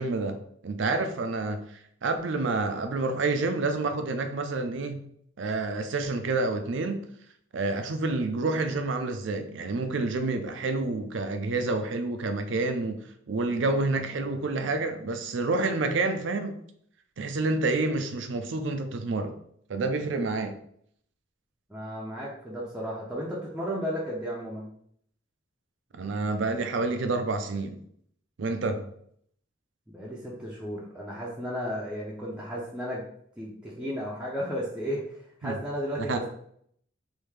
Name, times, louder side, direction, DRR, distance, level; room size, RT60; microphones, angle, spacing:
voice 1, 0.0-1.7 2.0-5.0 5.4-7.0 7.5-16.6 17.2-19.3 19.7-20.6 25.9-27.8 28.4-28.9 35.4-35.6 36.0-36.2, right 3 dB, 70° right, 0.5 m, -28 dB
voice 2, 21.7-24.7 29.9-33.1 33.4-36.3, equal, 5° right, 0.5 m, -34 dB
3.5 x 2.6 x 3.2 m
head